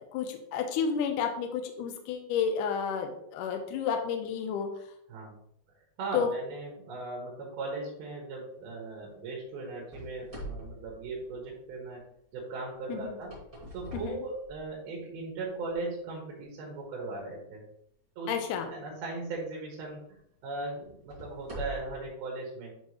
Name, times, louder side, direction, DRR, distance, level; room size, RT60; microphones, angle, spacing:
voice 1, 0.1-4.7 6.1-6.3 12.9-13.1 13.9-14.2 18.3-18.7, left 6 dB, 75° left, 5 dB, 2.1 m, -31 dB
voice 2, 6.0-12.0 12.3-13.3 13.7-17.6 18.2-18.3 18.7-22.8, right 3 dB, 85° right, -2 dB, 3.4 m, -38 dB
sound 1, 9.9-11.9 13.0-15.0 15.6-15.7 16.4-16.5 19.1-19.3 19.9-20.0 20.8-22.1, right 1 dB, 15° right, 1.4 m, -44 dB
10.0 x 4.0 x 3.1 m, 0.74 s
omnidirectional pair, 4.3 m